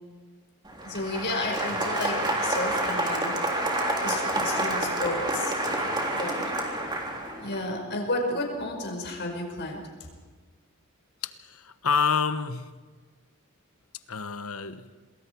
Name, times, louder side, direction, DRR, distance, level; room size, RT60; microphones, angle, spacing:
Applause, 0.7-7.6, right 1 dB, 20° right, 3.5 m, -28 dB
voice 1, 0.8-3.4 4.0-5.5 6.1-6.5 6.8-6.9 7.4-9.8, left 2 dB, 50° left, 5.3 m, -32 dB
voice 2, 11.2-12.7 14.1-14.9, left 6 dB, 70° left, 1.2 m, -28 dB
27.5 x 21.0 x 4.7 m
head